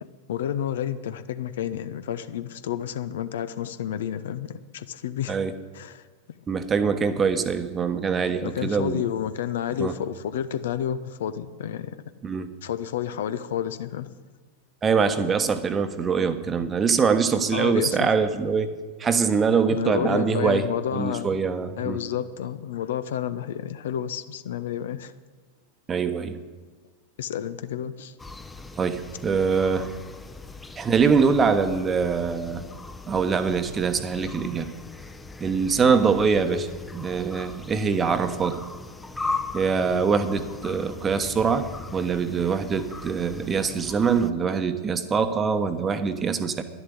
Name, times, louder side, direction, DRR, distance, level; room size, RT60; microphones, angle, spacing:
voice 1, 0.3-5.4 5.7-6.0 8.4-11.9 12.6-14.1 17.5-18.1 19.7-21.4 21.8-25.1 27.2-28.1, left 10 dB, 60° left, 13 dB, 0.7 m, -30 dB
voice 2, 6.5-9.0 9.8-9.9 12.2-12.5 14.8-18.7 19.0-20.7 20.9-22.0 25.9-26.4 28.8-29.9 30.8-32.7 33.1-34.7 35.4-36.7 36.9-38.6 39.5-46.6, right 5 dB, 20° right, 10 dB, 1.1 m, -23 dB
sound 1, 28.2-44.3, left 3 dB, 10° left, 0.8 m, -39 dB
11.0 x 11.0 x 8.4 m, 1.4 s
figure-of-eight pair, 90°, 0 cm